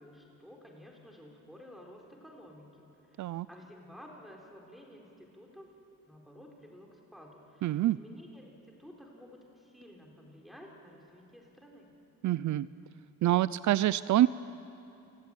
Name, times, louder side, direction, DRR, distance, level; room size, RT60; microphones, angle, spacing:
voice 1, 0.0-5.7 6.1-11.9, equal, ahead, -1 dB, 4.4 m, -53 dB
voice 2, 7.6-8.0 12.2-12.7 13.2-14.3, right 14 dB, 70° right, 16 dB, 0.6 m, -26 dB
29.5 x 19.0 x 9.1 m, 2.8 s
cardioid pair, 145°, 30 cm